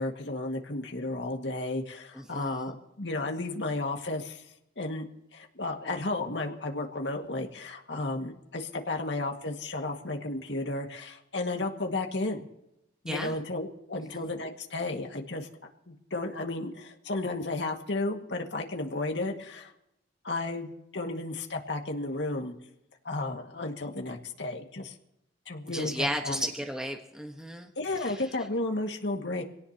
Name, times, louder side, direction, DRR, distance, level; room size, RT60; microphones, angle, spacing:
voice 1, 0.0-4.4 4.8-5.1 5.3-12.5 13.0-15.5 15.9-19.7 20.2-22.5 23.0-24.9 25.5-26.5 27.8-29.4, left 2 dB, 80° left, 3 dB, 1.9 m, -33 dB
voice 2, 2.1-2.7 13.0-13.4 14.0-14.2 25.7-27.7 28.0-28.2, equal, 5° right, 3 dB, 1.2 m, -34 dB
25.5 x 17.5 x 2.9 m, 0.84 s
head